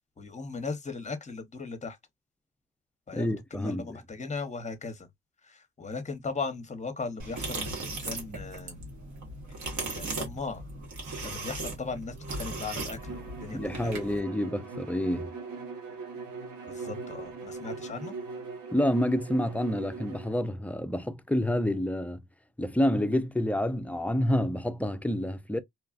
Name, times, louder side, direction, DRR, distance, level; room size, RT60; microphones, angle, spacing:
voice 1, 0.2-2.0 3.1-5.1 5.4-8.9 9.9-10.6 11.2-13.9 16.7-18.2, left 4 dB, 25° left, 0.8 m, -38 dB
voice 2, 3.1-4.0 13.5-15.3 18.7-22.2 22.6-25.6, left 1 dB, 5° left, 0.3 m, -28 dB
sound 1, 7.2-14.2, right 2 dB, 65° right, 1.5 m, -37 dB
Bowed string instrument, 13.0-20.4, right 4 dB, 85° right, 1.0 m, -41 dB
3.0 x 2.3 x 2.3 m
cardioid pair, 90°, 30 cm